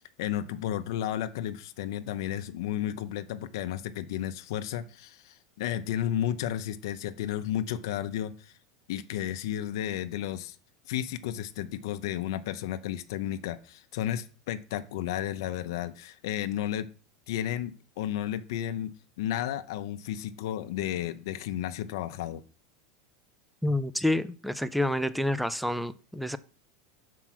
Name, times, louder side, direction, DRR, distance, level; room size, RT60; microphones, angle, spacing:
voice 1, 0.0-8.5 8.9-10.6 10.9-16.9 17.3-22.4, left 11 dB, 75° left, 0.6 m, -33 dB
voice 2, 23.6-26.4, left 1 dB, ahead, 0.3 m, -28 dB
6.0 x 4.6 x 5.9 m
supercardioid pair, 140°, 2 cm